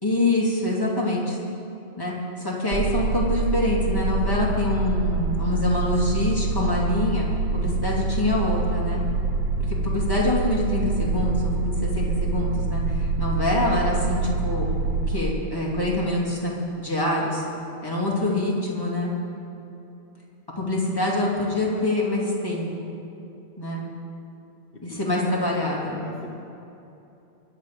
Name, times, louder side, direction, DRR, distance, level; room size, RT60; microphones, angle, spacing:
voice 1, 0.0-1.4 2.0-7.3 7.5-9.0 9.8-14.7 14.9-17.4 17.8-19.1 20.6-22.6 23.6-23.8 24.8-26.0, left 1 dB, 20° left, -4 dB, 2.5 m, -25 dB
sound 1, 2.7-15.2, right 3 dB, 60° right, 0.9 m, -26 dB
voice 2, 24.7-25.5 25.8-26.3, left 2 dB, 55° left, -3 dB, 1.4 m, -42 dB
22.5 x 8.2 x 5.0 m, 2.9 s
omnidirectional pair, 1.1 m